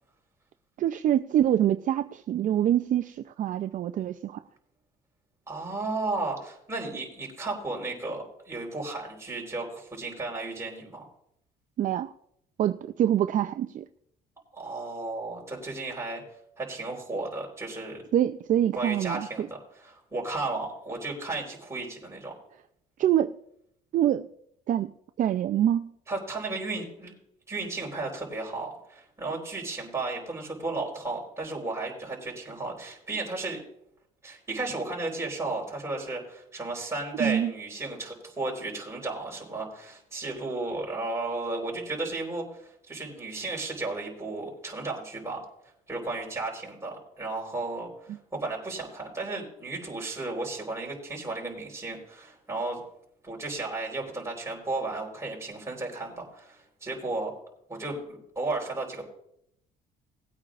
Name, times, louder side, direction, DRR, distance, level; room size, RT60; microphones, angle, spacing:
voice 1, 0.8-4.4 11.8-12.1 12.6-13.8 18.1-19.5 23.0-23.3 23.9-24.3 24.7-24.9 25.2-25.9 37.2-37.5, right 11 dB, 50° right, 0.5 m, -25 dB
voice 2, 5.5-11.1 14.5-16.2 16.6-18.0 18.8-19.5 19.8-22.3 26.1-27.1 27.5-33.6 34.2-45.4 45.9-52.8 53.2-57.3 57.7-59.0, right 2 dB, 15° right, 4.2 m, -34 dB
19.5 x 8.8 x 2.5 m
cardioid pair, 110°, 17 cm